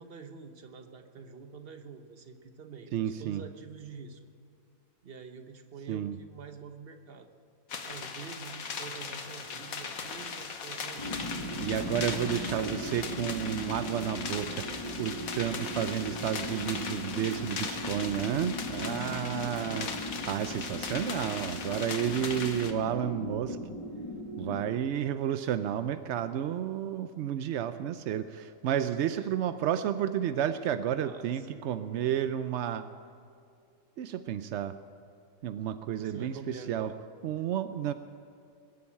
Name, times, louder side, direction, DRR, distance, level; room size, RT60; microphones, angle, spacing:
voice 1, 0.0-4.2 5.0-7.3 7.8-11.2 12.1-12.4 18.7-20.0 24.4-24.8 28.8-29.4 31.0-31.7 35.9-37.0, right 5 dB, 40° right, 6 dB, 1.1 m, -47 dB
voice 2, 2.9-3.4 5.9-6.2 11.6-19.9 20.3-23.6 24.4-32.9 34.0-34.8 35.4-36.9 37.2-37.9, right 10 dB, 75° right, 11 dB, 0.6 m, -31 dB
sound 1, 7.7-22.7, left 5 dB, 65° left, 1.5 m, -39 dB
sound 2, 11.0-24.6, left 1 dB, 20° left, 1.7 m, -38 dB
21.5 x 7.7 x 8.6 m, 2.3 s
omnidirectional pair, 1.7 m